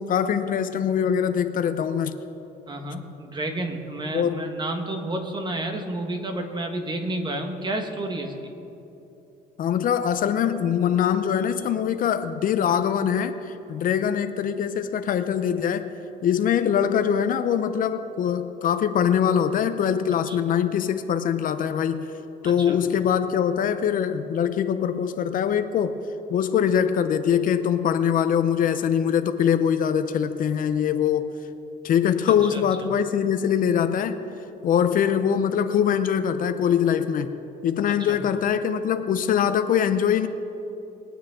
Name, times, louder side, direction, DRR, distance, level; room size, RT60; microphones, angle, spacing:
voice 1, 0.0-2.2 4.1-4.4 9.6-15.9 16.2-22.0 22.4-26.0 26.3-31.3 31.8-34.2 34.6-37.4 37.6-40.3, left 8 dB, 55° left, 10 dB, 0.6 m, -23 dB
voice 2, 2.7-8.5 20.3-20.4 22.4-22.8 32.4-32.6 37.9-38.2, right 1 dB, 25° right, 4 dB, 1.5 m, -31 dB
22.5 x 9.1 x 3.7 m, 3.0 s
cardioid pair, 110°, 17 cm